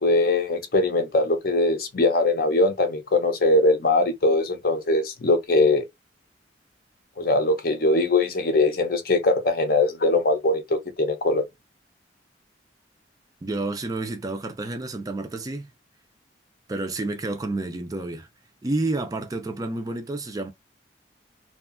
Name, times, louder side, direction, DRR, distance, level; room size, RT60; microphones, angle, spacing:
voice 1, 0.0-5.8 7.2-11.4, left 2 dB, 50° left, 0.6 m, -21 dB
voice 2, 13.4-15.7 16.7-18.3 18.6-20.5, right 2 dB, 20° right, 0.3 m, -29 dB
2.6 x 2.3 x 2.4 m
head